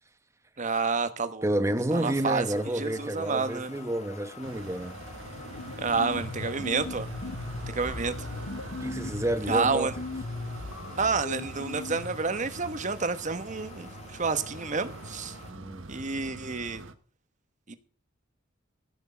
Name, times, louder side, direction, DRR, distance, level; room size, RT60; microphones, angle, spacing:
voice 1, 0.6-1.4 1.9-2.5 2.7-3.7 5.8-7.1 7.7-8.2 9.5-9.9 11.0-15.4 15.9-16.8 17.7-17.8, right 4 dB, 35° right, 1.2 m, -29 dB
voice 2, 1.4-5.0 8.8-9.9 15.5-15.9, right 1 dB, 15° right, 1.0 m, -29 dB
sound 1, 1.9-15.5, left 3 dB, 35° left, 1.7 m, -48 dB
sound 2, 4.4-16.9, right 2 dB, 70° right, 1.3 m, -43 dB
sound 3, 5.1-12.3, left 3 dB, 70° left, 0.8 m, -38 dB
15.0 x 6.3 x 6.1 m
head